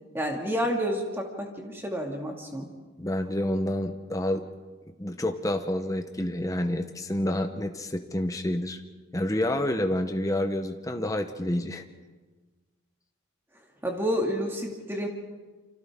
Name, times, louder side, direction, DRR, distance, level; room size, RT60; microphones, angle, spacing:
voice 1, 0.1-2.7 13.8-15.1, equal, 10° right, 1 dB, 2.3 m, -29 dB
voice 2, 3.0-4.4 5.0-8.8 9.1-11.8, left 1 dB, 15° left, 6 dB, 1.0 m, -28 dB
28.5 x 25.5 x 3.7 m, 1.3 s
head